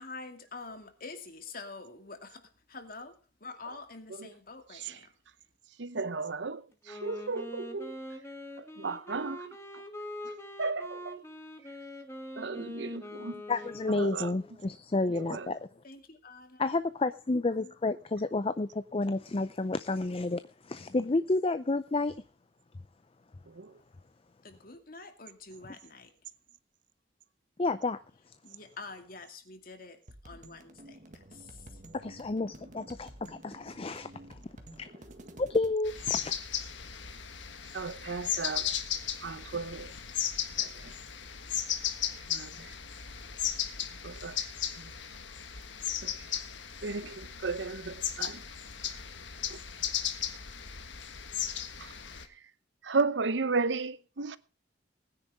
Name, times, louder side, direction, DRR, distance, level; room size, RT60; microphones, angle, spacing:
voice 1, 0.0-3.1 3.4-5.1 15.8-16.6 24.4-26.1 28.4-30.0 30.2-31.6, left 3 dB, 50° left, 2.4 m, -46 dB
voice 2, 4.7-5.1 5.8-8.0 8.6-9.8 10.2-10.3 10.6-11.2 12.4-13.4 13.9-14.3 15.1-15.5 23.5-23.8 37.7-38.7 39.2-39.9 40.6-41.0 42.3-42.7 43.9-44.5 44.8-44.9 46.0-46.3 46.8-48.4 49.5-49.6 51.8-51.9 52.3-52.4 52.8-54.4, right 4 dB, 75° right, 0.9 m, -35 dB
Wind instrument woodwind instrument, 6.8-14.6, equal, 15° left, 2.1 m, -44 dB
voice 3, 13.5-15.6 16.6-22.1 27.6-28.0 31.9-34.4 34.8-34.9 35.4-36.3, left 3 dB, 30° left, 0.5 m, -30 dB
sound 1, 30.1-35.7, right 1 dB, 45° right, 1.8 m, -50 dB
sound 2, 35.8-52.2, left 9 dB, 85° left, 1.5 m, -36 dB
19.5 x 10.0 x 3.5 m
head